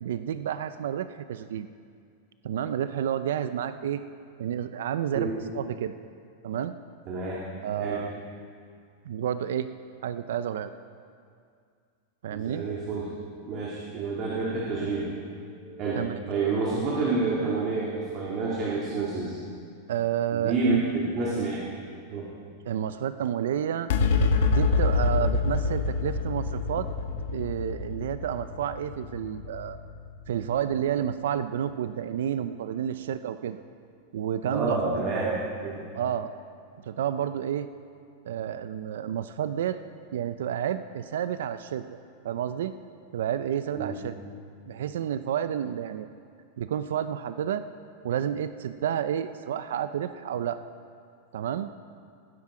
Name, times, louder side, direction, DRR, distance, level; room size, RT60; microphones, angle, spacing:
voice 1, 0.0-1.7 2.4-4.0 4.4-5.3 5.5-5.9 6.4-6.7 7.6-8.2 9.1-9.7 10.0-10.7 12.2-12.6 16.0-16.2 19.9-20.8 21.3-21.5 22.7-23.9 24.4-26.9 27.3-29.8 30.3-33.6 34.1-35.1 36.0-36.3 36.9-37.7 38.2-39.8 40.1-41.9 42.2-42.7 43.1-44.1 44.7-46.1 46.6-47.6 48.0-50.6 51.3-51.7, right 9 dB, 80° right, 12 dB, 0.5 m, -30 dB
voice 2, 7.1-7.4 7.8-8.0 12.3-13.1 13.5-19.4 20.3-21.6 22.1-22.3 34.4-35.8 43.7-43.9, right 3 dB, 30° right, -5 dB, 2.2 m, -29 dB
sound 1, 23.9-30.6, left 4 dB, 65° left, 1.1 m, -26 dB
19.5 x 9.7 x 5.0 m, 2.3 s
supercardioid pair, 170°, 0 cm